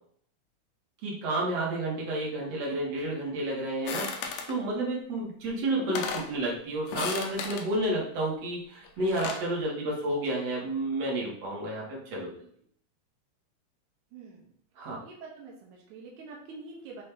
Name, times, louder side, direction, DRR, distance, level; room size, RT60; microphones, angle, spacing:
voice 1, 1.0-12.4 14.8-15.0, right 1 dB, 55° right, -3 dB, 2.3 m, -31 dB
sound 1, 3.9-4.6 5.5-5.6 5.8-6.3 6.9-7.7 8.8-9.5, left 5 dB, 90° left, 1.5 m, -34 dB
voice 2, 14.1-14.5 15.0-17.0, right 4 dB, 75° right, -2 dB, 2.1 m, -46 dB
5.8 x 2.7 x 3.4 m, 0.63 s
omnidirectional pair, 3.7 m